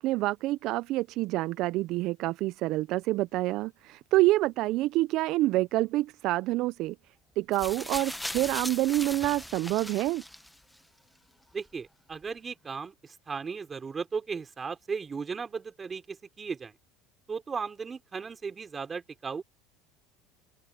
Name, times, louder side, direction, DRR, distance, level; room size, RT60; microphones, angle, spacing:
voice 1, 0.0-7.0 7.4-10.2, right 18 dB, 55° right, 0.4 m, -27 dB
sound 1, 7.5-10.8 11.7-11.8, left 1 dB, 5° left, 1.0 m, -38 dB
voice 2, 11.5-16.7 17.3-19.4, right 5 dB, 20° right, 3.6 m, -36 dB
open air
supercardioid pair, 130°, 0 cm